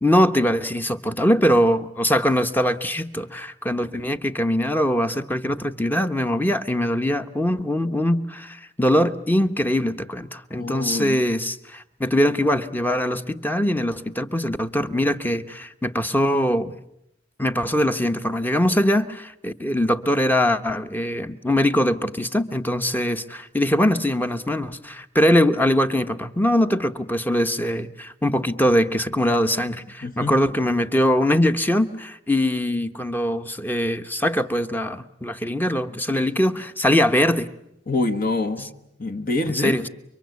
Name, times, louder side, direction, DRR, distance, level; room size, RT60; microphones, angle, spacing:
voice 1, 0.0-16.7 17.4-37.5 39.5-39.9, equal, 10° left, 9 dB, 1.0 m, -22 dB
voice 2, 10.5-11.2 30.0-30.3 37.9-38.7 39.0-39.8, left 2 dB, 45° left, 6 dB, 1.5 m, -25 dB
29.5 x 24.0 x 8.3 m, 0.78 s
head